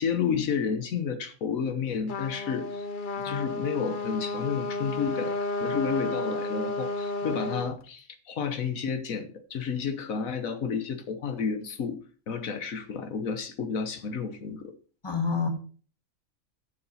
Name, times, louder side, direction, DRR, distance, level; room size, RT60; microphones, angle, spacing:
voice 1, 0.0-2.9 3.2-14.7, left 6 dB, 85° left, 1.5 m, -31 dB
Trumpet, 2.1-7.7, left 2 dB, 45° left, 0.8 m, -32 dB
voice 2, 15.0-15.5, left 5 dB, 20° left, 2.0 m, -29 dB
9.0 x 7.1 x 5.6 m
omnidirectional pair, 1.4 m